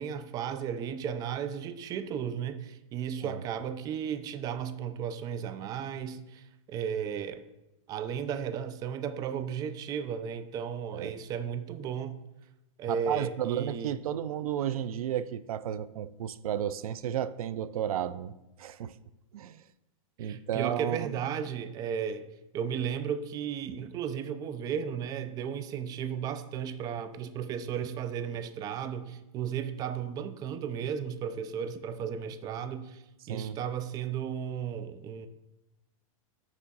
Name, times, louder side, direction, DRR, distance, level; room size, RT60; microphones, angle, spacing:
voice 1, 0.0-7.4 7.9-12.2 12.8-14.0 20.2-22.3 22.5-33.0 33.3-35.3, right 8 dB, 20° right, 0.4 m, -34 dB
voice 2, 12.9-18.3 18.6-19.0 19.3-19.6 20.2-21.2 33.3-33.6, right 10 dB, 85° right, 0.4 m, -33 dB
6.1 x 5.5 x 4.0 m
hypercardioid pair, 135°, 18 cm